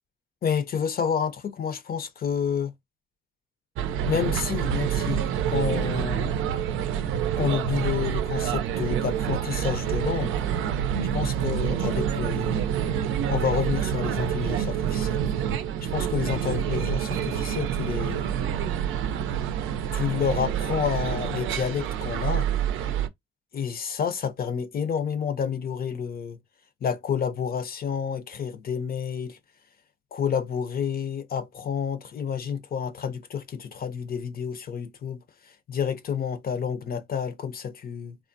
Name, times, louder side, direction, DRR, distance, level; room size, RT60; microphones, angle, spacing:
voice 1, 0.4-2.7 4.0-6.3 7.4-10.3 11.1-12.8 13.3-15.2 15.8-18.3 19.9-22.5 23.5-26.4 26.8-29.4 30.1-38.2, left 7 dB, 50° left, 0.6 m, -29 dB
sound 1, 3.8-23.1, right 9 dB, 85° right, 0.5 m, -27 dB
3.4 x 2.1 x 2.6 m
cardioid pair, 90°, 20 cm